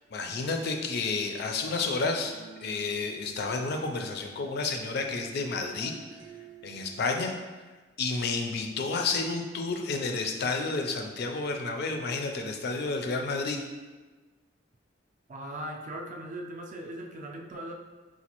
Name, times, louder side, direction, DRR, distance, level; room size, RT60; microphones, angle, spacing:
voice 1, 0.1-2.3 2.6-5.9 6.6-7.4 8.0-13.6, left 3 dB, 55° left, 4 dB, 0.4 m, -30 dB
sound 1, 1.8-7.0, right 5 dB, 90° right, 0.6 m, -51 dB
voice 2, 15.3-17.7, right 1 dB, 40° right, 1 dB, 0.4 m, -39 dB
4.0 x 2.3 x 2.9 m, 1.3 s
head